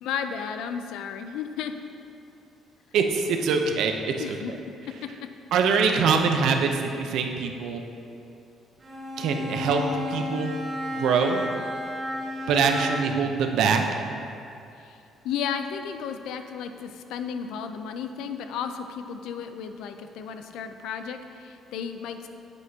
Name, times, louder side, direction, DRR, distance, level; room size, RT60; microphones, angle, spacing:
voice 1, 0.0-1.7 4.2-4.5 5.0-5.1 14.9-15.0 15.2-22.3, left 7 dB, 90° left, 8 dB, 0.4 m, -33 dB
voice 2, 2.9-4.4 5.5-7.8 9.2-9.8 10.1-10.6 11.0-11.4 12.5-13.8, right 5 dB, 75° right, 4 dB, 0.7 m, -23 dB
Bowed string instrument, 8.8-13.2, left 1 dB, 30° right, 1.4 m, -32 dB
8.2 x 8.0 x 2.8 m, 2.6 s
cardioid pair, 125°, 0 cm